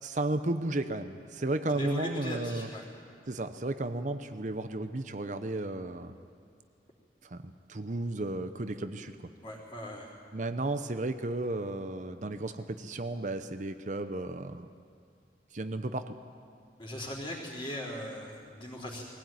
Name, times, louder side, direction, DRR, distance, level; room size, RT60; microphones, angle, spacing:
voice 1, 0.0-2.7 3.3-6.2 7.2-7.4 7.7-9.1 10.3-14.7 15.5-16.2, right 2 dB, 45° right, 9 dB, 0.7 m, -33 dB
voice 2, 1.7-2.9 9.4-10.1 16.8-19.0, equal, 25° left, -10 dB, 3.7 m, -39 dB
21.5 x 16.5 x 9.3 m, 2.3 s
head